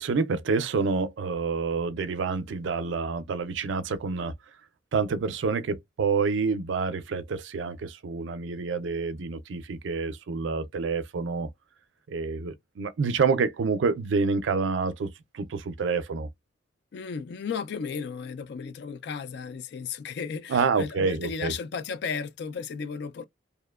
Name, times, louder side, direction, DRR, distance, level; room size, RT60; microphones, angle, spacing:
voice 1, 0.0-4.3 4.9-11.5 12.1-16.3 20.5-21.5, right 4 dB, 75° right, 0.4 m, -28 dB
voice 2, 16.9-23.2, left 6 dB, 60° left, 0.3 m, -34 dB
2.7 x 2.1 x 2.2 m
head